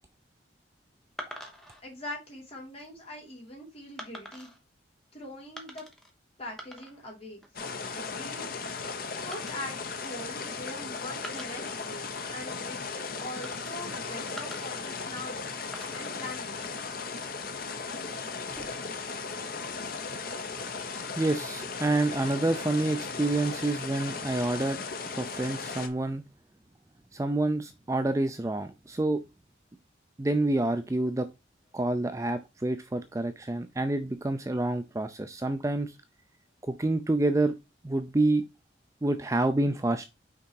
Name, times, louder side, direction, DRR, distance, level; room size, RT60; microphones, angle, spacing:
sound 1, 1.2-1.8 2.5-2.9 4.0-4.6 5.6-6.1 6.4-7.1 7.4-7.9 9.3-10.8 11.1-12.4 13.4-14.0 14.4-15.4 15.7-17.4 18.4-19.0, equal, ahead, 1.0 m, -47 dB
voice 1, 1.8-4.5 5.1-5.8 6.4-7.4 7.9-8.5 9.2-12.8 13.2-15.6 15.9-16.6, left 1 dB, 30° left, 2.7 m, -42 dB
sound 2, 7.5-25.9, left 4 dB, 50° left, 0.8 m, -37 dB
voice 2, 21.1-24.8 25.1-26.2 27.1-29.2 30.2-31.3 31.7-36.0 36.6-37.6 37.8-38.4 39.0-40.1, right 2 dB, 15° right, 0.4 m, -28 dB
5.8 x 3.9 x 4.7 m
head